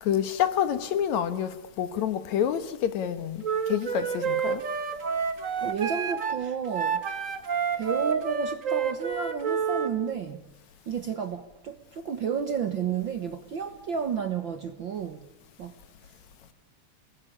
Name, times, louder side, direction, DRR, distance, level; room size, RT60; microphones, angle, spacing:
voice 1, 0.0-4.6, left 9 dB, 70° left, 2.5 m, -28 dB
Wind instrument woodwind instrument, 3.4-9.9, right 6 dB, 35° right, 1.4 m, -29 dB
voice 2, 5.6-7.0 7.7-10.4 10.9-15.3 15.6-15.7, right 7 dB, 55° right, 1.4 m, -31 dB
29.0 x 20.0 x 10.0 m
omnidirectional pair, 3.5 m